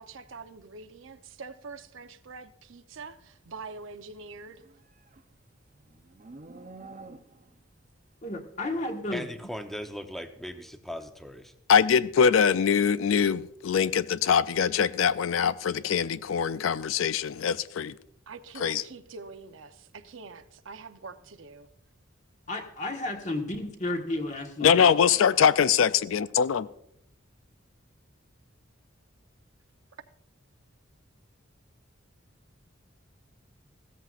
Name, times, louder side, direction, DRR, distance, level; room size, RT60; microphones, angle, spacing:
voice 1, 0.0-4.6 18.3-21.7, right 4 dB, 75° right, 0.7 m, -45 dB
Livestock farm animals working animals, 4.4-7.6, right 3 dB, 40° right, 0.6 m, -48 dB
voice 2, 8.2-9.3 22.5-24.9, left 2 dB, 35° left, 1.4 m, -32 dB
voice 3, 9.1-11.5, equal, ahead, 0.8 m, -38 dB
voice 4, 11.7-17.9 18.6-18.8 24.6-26.7, left 7 dB, 80° left, 0.4 m, -23 dB
15.5 x 13.5 x 2.5 m
head